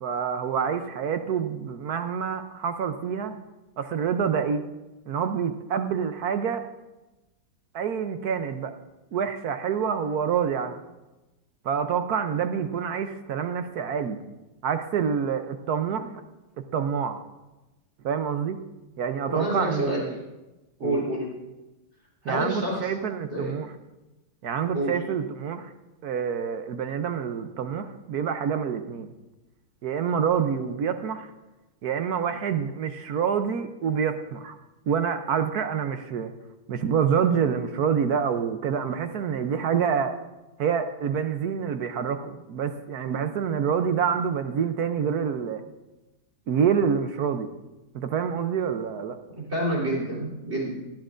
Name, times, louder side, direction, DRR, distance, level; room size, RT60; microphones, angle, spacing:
voice 1, 0.0-3.3 3.8-4.6 5.1-6.6 7.7-8.7 9.1-10.8 11.6-14.2 14.6-16.2 16.7-17.2 18.0-18.6 19.0-20.2 20.8-21.0 22.2-23.7 24.4-25.7 26.0-29.1 29.8-31.3 31.8-34.6 34.9-36.3 36.7-40.1 40.6-45.6 46.5-47.5 47.9-49.2, right 7 dB, 65° right, 8 dB, 1.2 m, -27 dB
voice 2, 19.3-20.0 20.8-21.3 22.2-22.9 23.3-23.6 24.7-24.9 49.4-50.7, equal, 40° right, -4 dB, 4.0 m, -28 dB
19.5 x 14.5 x 2.6 m, 1.1 s
omnidirectional pair, 1.8 m